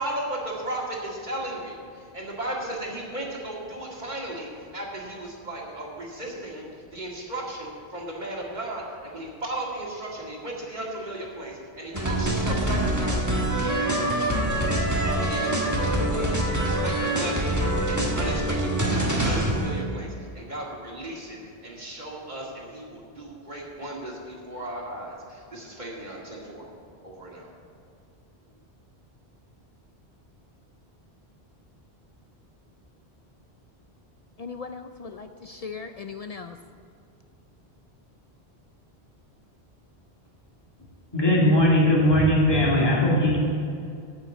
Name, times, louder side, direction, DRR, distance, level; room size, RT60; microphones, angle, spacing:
voice 1, 0.0-6.6 6.9-14.3 15.0-17.6 17.9-26.7 27.0-27.5, right 1 dB, 45° right, -3 dB, 2.2 m, -35 dB
sound 1, 11.9-19.8, right 1 dB, 15° right, 1.3 m, -25 dB
voice 2, 34.4-36.6, left 5 dB, 55° left, 7 dB, 0.4 m, -38 dB
voice 3, 41.1-43.4, left 1 dB, 25° left, -5 dB, 2.4 m, -19 dB
9.3 x 7.4 x 8.1 m, 2.5 s
omnidirectional pair, 1.1 m